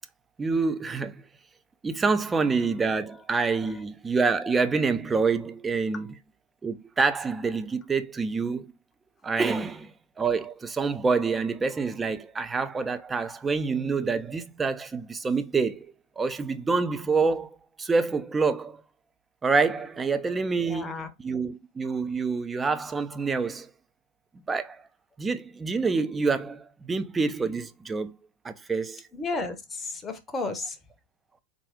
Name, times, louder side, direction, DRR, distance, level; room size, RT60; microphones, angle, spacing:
voice 1, 0.4-1.2 1.8-6.1 6.6-8.7 9.2-18.8 19.4-23.7 24.5-24.8 25.2-28.2 28.4-29.0, right 4 dB, 15° right, 0.4 m, -27 dB
voice 2, 20.5-21.1 29.1-30.8, left 3 dB, 15° left, 0.7 m, -33 dB
3.6 x 2.4 x 3.5 m
figure-of-eight pair, 90°, 0 cm